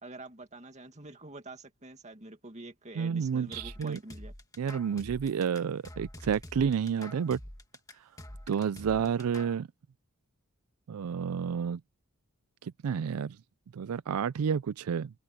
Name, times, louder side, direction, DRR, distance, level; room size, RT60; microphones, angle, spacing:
voice 1, 0.0-4.3, right 2 dB, 30° right, 2.1 m, -46 dB
voice 2, 3.0-4.0 4.6-7.4 8.5-9.7 10.9-11.8 12.6-13.4 13.7-15.1, right 7 dB, 80° right, 0.4 m, -30 dB
sound 1, 3.5-9.6, left 1 dB, 15° left, 1.7 m, -46 dB
head